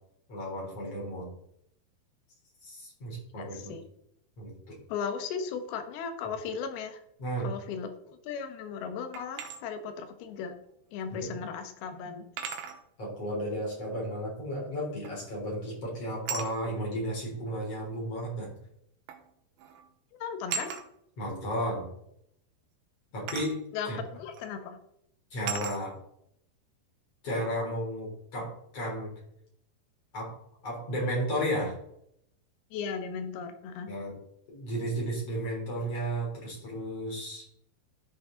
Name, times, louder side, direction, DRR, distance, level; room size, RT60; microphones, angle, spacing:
voice 1, 0.3-1.3 2.6-3.7 4.4-4.5 7.2-7.5 11.1-11.3 13.0-18.5 21.2-21.9 23.1-23.6 23.9-24.0 25.3-26.0 27.2-29.1 30.1-30.3 30.6-31.7 33.9-34.2 34.5-37.4, equal, 40° left, -3 dB, 4.4 m, -33 dB
voice 2, 3.4-3.8 4.9-7.0 7.4-10.5 10.9-12.3 20.2-20.7 23.7-24.8 32.7-33.9, left 6 dB, 75° left, 7 dB, 2.9 m, -36 dB
sound 1, 9.1-9.6 11.1-11.2 12.4-12.8 15.0-15.4 16.3-16.5 17.7-17.8 19.1-19.3 19.6-19.8 20.5-20.8 23.3-23.5 24.3-24.5 25.5-25.8, right 6 dB, 90° right, 3.2 m, -36 dB
13.5 x 6.0 x 3.9 m, 0.74 s
omnidirectional pair, 4.7 m